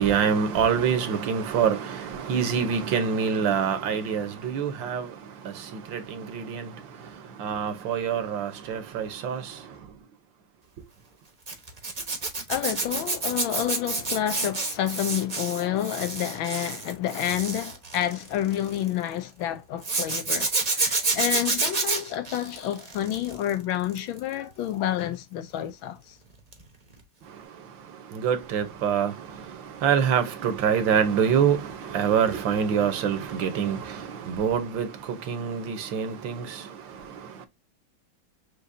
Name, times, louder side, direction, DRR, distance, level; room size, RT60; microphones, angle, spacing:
voice 1, 0.0-10.0 27.2-37.5, right 7 dB, 70° right, 1.6 m, -26 dB
Zipper (clothing), 11.5-18.9 19.8-23.5 23.8-24.2 26.5-26.7 26.9-27.0, right 3 dB, 30° right, 0.7 m, -29 dB
voice 2, 12.5-26.2, left 11 dB, 80° left, 1.4 m, -29 dB
6.3 x 2.9 x 2.6 m
omnidirectional pair, 2.2 m